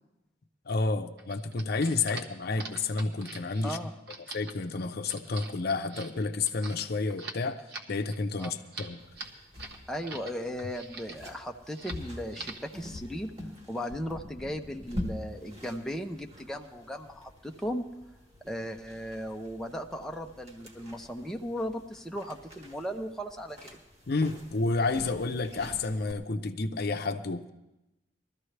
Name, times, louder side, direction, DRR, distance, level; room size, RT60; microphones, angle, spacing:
voice 1, 0.7-3.8 4.3-7.6 7.9-9.0 24.1-27.5, left 3 dB, 55° left, 7 dB, 0.6 m, -30 dB
sound 1, 1.2-10.3 10.6-11.3 11.7-12.0 12.3-12.7, right 3 dB, 60° right, 1.4 m, -43 dB
sound 2, 9.0-26.1, left 1 dB, 35° right, 1.5 m, -45 dB
voice 2, 9.9-13.3 13.7-17.9 18.5-23.8, equal, 5° left, 2 dB, 0.6 m, -36 dB
20.5 x 13.5 x 3.3 m, 0.95 s
head